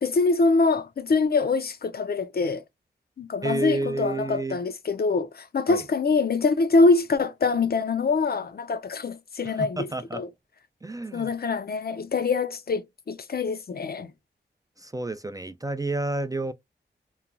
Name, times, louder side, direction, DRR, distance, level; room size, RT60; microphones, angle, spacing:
voice 1, 0.0-2.6 3.2-9.9 10.1-10.3 11.1-14.1, left 3 dB, 50° left, 0.5 m, -24 dB
voice 2, 3.4-4.6 5.7-5.8 9.4-10.2 10.8-11.3 14.8-16.5, right 2 dB, 20° right, 0.3 m, -30 dB
3.0 x 2.2 x 2.4 m
cardioid pair, 40°, 20 cm